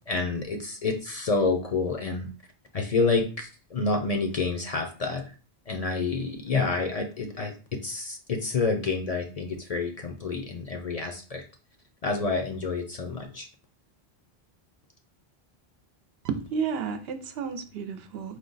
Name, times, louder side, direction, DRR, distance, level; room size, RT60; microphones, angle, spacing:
voice 1, 0.0-2.2 2.7-5.2 5.7-11.4 12.0-13.5, left 3 dB, 50° left, 0.5 m, -28 dB
voice 2, 16.2-18.4, right 6 dB, 80° right, 0.8 m, -32 dB
4.8 x 2.1 x 3.8 m
omnidirectional pair, 1.0 m